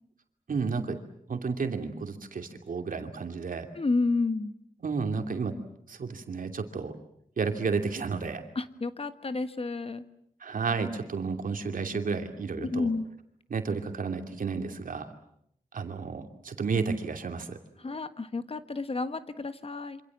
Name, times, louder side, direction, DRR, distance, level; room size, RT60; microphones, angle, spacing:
voice 1, 0.5-1.0 1.3-3.7 4.8-5.6 5.9-6.9 7.4-8.4 10.4-12.9 13.5-15.1 15.7-17.6, right 5 dB, 75° right, 5 dB, 2.8 m, -32 dB
voice 2, 3.7-4.5 8.5-10.0 12.6-13.1 17.8-20.0, left 3 dB, 45° left, 11 dB, 1.6 m, -30 dB
27.5 x 26.0 x 7.4 m, 0.71 s
wide cardioid pair, 75°, 14 cm